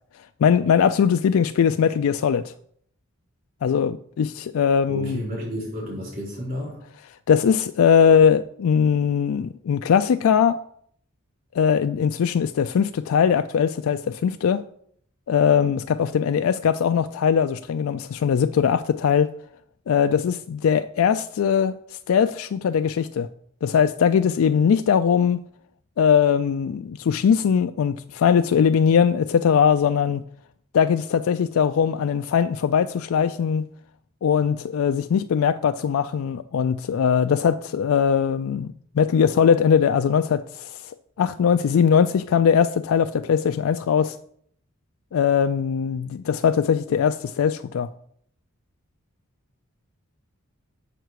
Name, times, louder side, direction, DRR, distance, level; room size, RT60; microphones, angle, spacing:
voice 1, 0.4-2.5 3.6-5.2 7.3-10.6 11.5-14.6 15.3-19.3 19.9-23.3 23.6-25.4 26.0-30.2 30.7-33.6 34.2-44.2 45.1-47.9, left 7 dB, 85° left, 0.3 m, -20 dB
voice 2, 4.9-6.8, equal, 45° right, 3.9 m, -31 dB
7.9 x 5.8 x 4.7 m
head